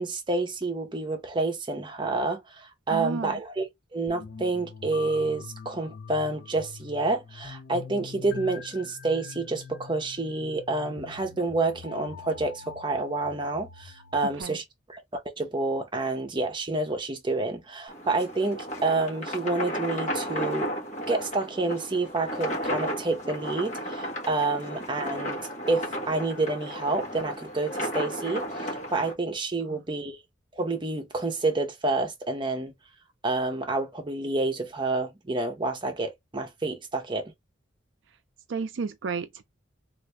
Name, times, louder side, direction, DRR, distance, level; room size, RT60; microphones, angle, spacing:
voice 1, 0.0-3.7 3.9-14.6 14.9-20.7 21.1-25.4 25.7-30.2 30.5-32.7 33.2-37.3, right 3 dB, 25° right, 0.8 m, -29 dB
voice 2, 2.9-3.4 14.4-14.6 29.7-29.8 38.5-39.4, right 4 dB, 70° right, 0.4 m, -32 dB
sound 1, 4.1-14.4, left 5 dB, 55° left, 0.7 m, -44 dB
sound 2, 17.9-29.1, equal, 40° left, 1.3 m, -34 dB
3.4 x 2.6 x 3.1 m
head